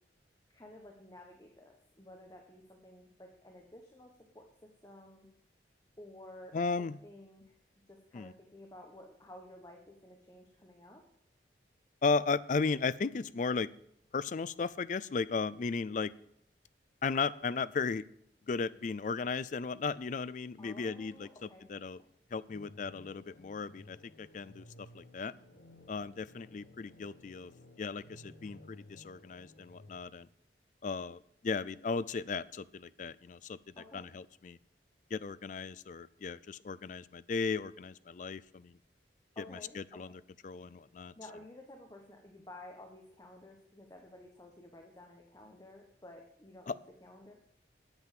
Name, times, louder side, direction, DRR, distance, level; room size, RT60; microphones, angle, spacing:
voice 1, 0.5-5.3 6.0-7.5 7.9-11.0 20.6-21.7 33.8-34.1 39.3-40.2 41.2-47.4, left 1 dB, 20° left, 2 dB, 1.1 m, -53 dB
voice 2, 6.5-7.0 8.1-8.3 12.0-13.7 14.1-16.1 17.0-18.0 18.5-22.0 22.3-24.6 24.9-25.3 25.9-27.5 27.8-30.3 30.8-33.6 33.9-34.6 35.1-38.7 39.8-41.1 46.7-46.8, left 4 dB, 45° left, 17 dB, 0.4 m, -35 dB
sound 1, 22.5-30.0, left 1 dB, 80° left, 1.2 m, -56 dB
8.9 x 7.9 x 7.5 m, 0.71 s
head